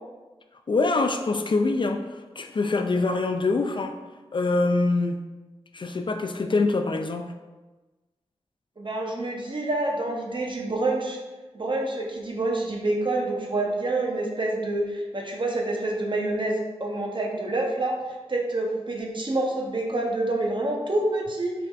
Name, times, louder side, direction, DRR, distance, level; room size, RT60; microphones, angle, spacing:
voice 1, 0.7-2.0 2.4-4.0 4.3-5.2 5.7-7.3, left 3 dB, 45° left, 6 dB, 0.3 m, -24 dB
voice 2, 8.8-11.2 11.5-17.9 18.3-21.5, right 2 dB, 45° right, 0 dB, 0.9 m, -27 dB
4.5 x 3.4 x 2.4 m, 1.2 s
cardioid pair, 40°, 12 cm